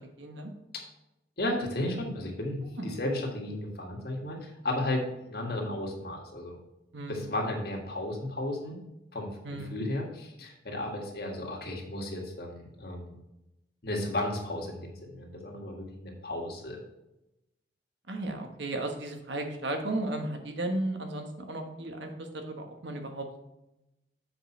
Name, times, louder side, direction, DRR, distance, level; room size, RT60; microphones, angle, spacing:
voice 1, 0.2-0.5 2.8-2.9 6.9-7.3 9.4-9.8 18.1-23.4, right 2 dB, 70° right, 4 dB, 1.2 m, -35 dB
voice 2, 1.4-6.6 7.1-8.8 9.1-9.3 9.7-13.2 13.8-16.8, left 1 dB, 55° left, 0 dB, 1.7 m, -34 dB
7.6 x 5.2 x 4.4 m, 0.91 s
head